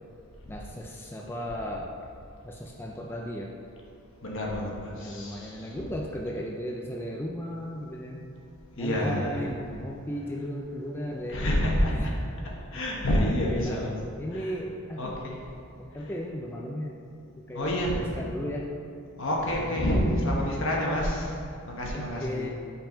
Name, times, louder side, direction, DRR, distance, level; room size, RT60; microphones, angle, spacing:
voice 1, 0.5-1.9 2.4-3.5 4.9-8.3 8.8-12.1 12.4-12.8 13.1-13.8 14.2-15.2 15.9-17.0 17.4-18.7 19.4-19.7 21.9-22.5, equal, 10° left, -1 dB, 0.3 m, -36 dB
voice 2, 4.2-5.9 8.8-9.4 11.1-12.1 12.7-13.9 14.3-14.5 15.0-15.4 16.0-16.1 17.5-18.1 19.2-21.3 21.7-22.5, equal, 60° left, -2 dB, 1.1 m, -28 dB
5.6 x 4.5 x 5.1 m, 2.6 s
head